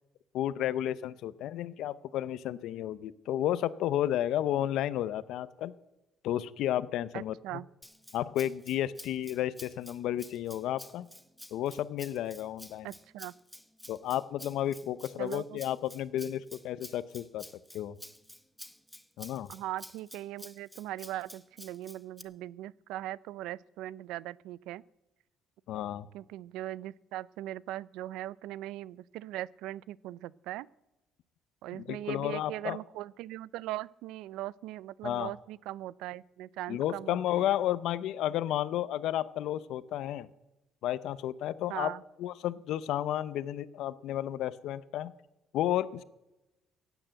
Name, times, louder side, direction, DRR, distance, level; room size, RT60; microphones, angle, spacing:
voice 1, 0.3-5.7 6.2-7.4 8.1-11.1 11.5-12.9 13.9-17.4 17.7-18.0 19.2-19.5 25.7-26.1 31.7-32.8 35.0-35.3 36.7-40.3 40.8-41.9 42.2-45.1 45.5-46.0, left 12 dB, 70° left, 17 dB, 0.7 m, -32 dB
voice 2, 7.1-7.7 12.8-13.3 15.2-15.6 19.5-24.8 26.1-30.7 31.6-37.5 41.7-42.0, right 15 dB, 90° right, 22 dB, 0.4 m, -40 dB
Rattle (instrument), 7.8-22.2, equal, ahead, 0.6 m, -50 dB
16.0 x 9.1 x 7.7 m, 0.97 s
cardioid pair, 140°, 0 cm